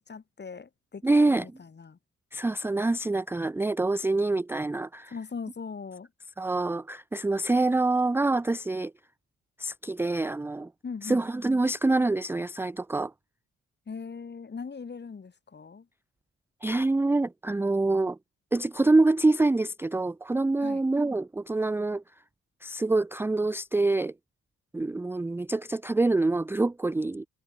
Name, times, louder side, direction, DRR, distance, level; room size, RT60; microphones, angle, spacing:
voice 1, 0.0-2.0 5.1-6.1 10.8-11.3 13.9-15.9 20.6-20.8, left 5 dB, 35° left, 5.6 m, -40 dB
voice 2, 1.0-1.5 2.3-5.1 6.4-8.9 9.6-10.7 11.0-13.1 16.6-18.2 18.5-22.0 22.6-24.1 24.7-27.3, right 2 dB, 10° right, 0.4 m, -26 dB
cardioid pair, 90°, 30 cm